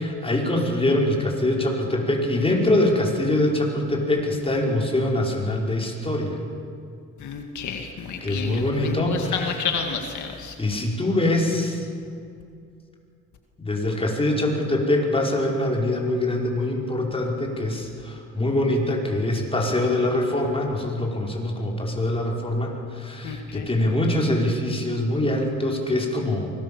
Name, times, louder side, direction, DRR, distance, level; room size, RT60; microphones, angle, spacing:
voice 1, 0.0-6.4 8.2-9.7 10.6-11.9 13.6-26.5, left 1 dB, 20° left, -1 dB, 5.5 m, -24 dB
voice 2, 7.2-10.5 23.2-23.7, left 5 dB, 75° left, 3 dB, 2.2 m, -30 dB
24.5 x 20.5 x 7.3 m, 2.4 s
cardioid pair, 90°, 30 cm